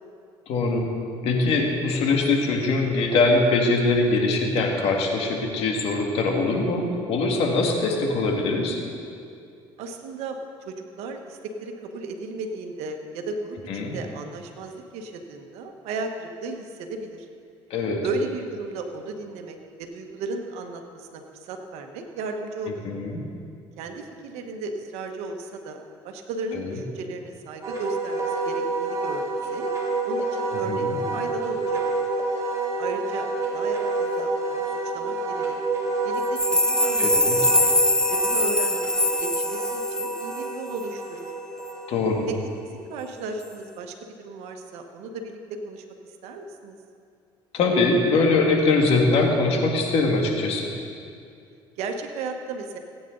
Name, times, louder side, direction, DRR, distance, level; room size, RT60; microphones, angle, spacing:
voice 1, 0.5-0.9 1.2-8.8 13.7-14.0 17.7-18.0 22.8-23.2 26.6-26.7 30.7-31.0 37.0-37.4 41.9-42.3 47.5-50.7, left 3 dB, 65° left, 1 dB, 2.1 m, -22 dB
voice 2, 9.8-17.3 18.0-22.8 23.8-29.7 30.0-31.8 32.8-33.3 33.5-35.6 36.0-37.7 38.1-41.3 42.3-42.4 42.6-45.4 45.6-45.8 46.2-46.8 51.8-52.8, right 3 dB, 75° right, 4 dB, 1.4 m, -35 dB
Wind instrument woodwind instrument, 27.6-42.3, right 3 dB, 30° right, 3.2 m, -28 dB
sound 1, 36.2-40.5 40.8-40.9, left 2 dB, 5° left, 0.6 m, -23 dB
19.0 x 9.3 x 4.0 m, 2.4 s
supercardioid pair, 85°, 11 cm